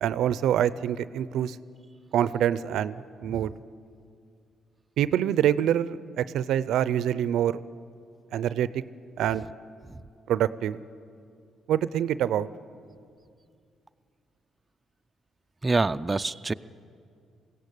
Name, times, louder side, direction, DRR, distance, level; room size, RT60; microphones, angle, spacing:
voice 1, 0.0-1.6 2.1-2.9 3.2-3.5 5.0-7.6 8.3-8.8 9.2-9.4 10.3-10.8 11.7-12.5, right 10 dB, 80° right, 16 dB, 0.5 m, -25 dB
voice 2, 15.6-16.5, right 3 dB, 20° right, 10 dB, 0.4 m, -26 dB
22.0 x 16.5 x 8.4 m, 2.4 s
cardioid pair, 90°, 0 cm